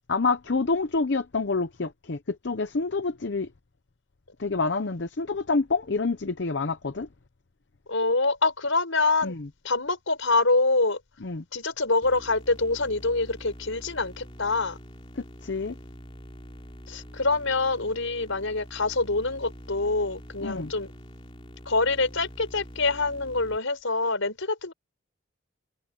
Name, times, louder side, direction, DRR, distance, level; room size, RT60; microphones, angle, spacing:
voice 1, 0.1-3.5 4.4-7.1 9.2-9.5 11.2-11.4 15.2-15.8 20.4-20.7, left 3 dB, 55° left, 0.7 m, -27 dB
voice 2, 7.9-9.3 9.6-11.0 11.5-14.8 16.9-20.9 21.6-24.7, left 3 dB, 75° left, 4.9 m, -25 dB
sound 1, 12.0-23.6, equal, 25° left, 3.8 m, -45 dB
head